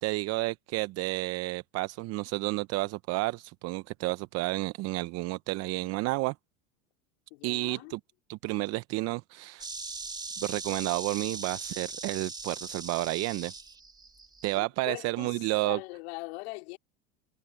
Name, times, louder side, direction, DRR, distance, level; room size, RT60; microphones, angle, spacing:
voice 1, 0.0-6.3 7.4-8.0 8.3-9.7 10.4-13.5 14.4-15.8, right 21 dB, 50° right, 0.7 m, -31 dB
voice 2, 7.3-7.9 14.6-16.8, left 26 dB, 75° left, 4.1 m, -41 dB
Insect, 9.6-14.6, right 3 dB, 10° right, 1.7 m, -40 dB
supercardioid pair, 110°, 33 cm